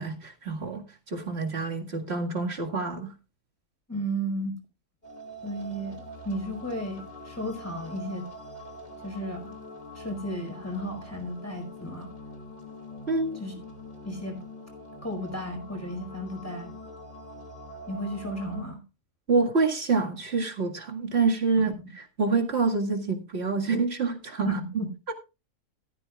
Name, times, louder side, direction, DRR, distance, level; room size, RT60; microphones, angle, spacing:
voice 1, 0.0-3.1 13.1-13.4 19.3-21.7 22.2-24.6, right 4 dB, 55° right, 2.2 m, -27 dB
voice 2, 3.9-4.6 5.4-8.3 9.0-9.5 9.9-12.1 13.4-13.6 14.0-14.4 15.0-16.7 17.9-18.8 21.7-21.8 24.4-25.1, equal, 10° left, 5.0 m, -34 dB
sound 1, 5.0-18.6, equal, 35° left, 2.8 m, -44 dB
14.5 x 13.5 x 2.4 m
omnidirectional pair, 1.4 m